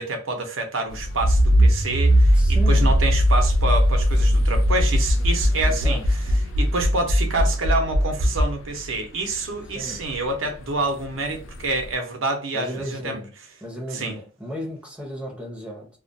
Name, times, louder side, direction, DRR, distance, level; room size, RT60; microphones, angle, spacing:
voice 1, 0.0-6.0 6.6-13.2 13.9-14.1, right 2 dB, 85° right, 0.7 m, -27 dB
sound 1, 0.9-12.0, equal, 75° left, 0.4 m, -37 dB
Accelerating revving vroom, 1.2-8.4, equal, 40° right, 0.4 m, -18 dB
voice 2, 2.3-3.0 5.7-6.0 9.7-10.0 12.5-13.3 13.6-15.9, equal, 5° right, 0.7 m, -34 dB
2.3 x 2.2 x 2.6 m
head